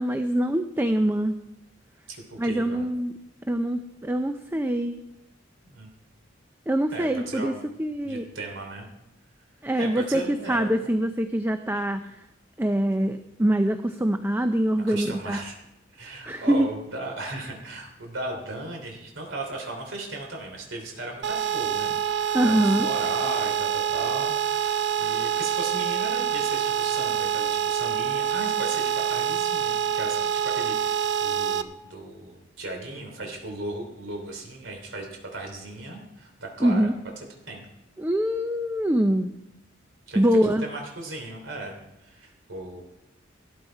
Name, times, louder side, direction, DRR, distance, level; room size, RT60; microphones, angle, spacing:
voice 1, 0.0-1.4 2.4-3.1 3.5-5.0 6.7-7.5 7.8-8.2 9.6-12.0 12.6-15.4 16.3-16.7 22.3-22.9 36.6-36.9 38.0-39.3 40.2-40.7, right 1 dB, 10° right, 8 dB, 0.5 m, -24 dB
voice 2, 2.1-2.8 5.7-5.9 6.9-7.6 8.0-8.9 9.7-10.7 14.9-15.6 15.9-36.9 37.5-37.7 40.1-42.8, right 2 dB, 80° right, 2 dB, 3.2 m, -36 dB
sound 1, 21.2-31.6, right 8 dB, 65° right, 0.7 m, -26 dB
13.5 x 13.5 x 4.6 m, 0.91 s
head